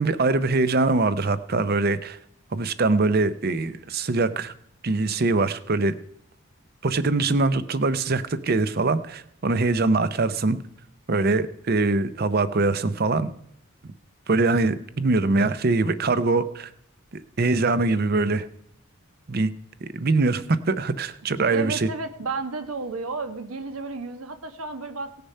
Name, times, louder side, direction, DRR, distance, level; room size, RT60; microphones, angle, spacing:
voice 1, 0.0-2.2 2.5-4.5 4.8-5.9 6.8-10.6 11.1-13.3 14.3-16.7 17.1-18.5 19.3-19.5 19.8-21.9, right 3 dB, 45° right, 13 dB, 0.6 m, -23 dB
voice 2, 21.5-25.2, right 3 dB, 90° right, 8 dB, 1.3 m, -32 dB
17.5 x 6.8 x 5.5 m, 0.73 s
head